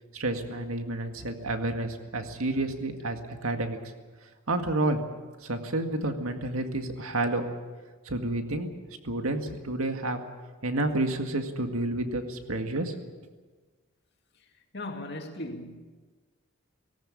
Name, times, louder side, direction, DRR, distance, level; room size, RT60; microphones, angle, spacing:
voice 1, 0.1-3.8 4.5-5.0 5.4-7.5 8.1-8.7 9.0-10.2 10.6-12.9, right 2 dB, 85° right, 2.0 m, -30 dB
voice 2, 14.7-15.8, left 1 dB, 50° left, 2.4 m, -37 dB
18.5 x 18.0 x 8.6 m
head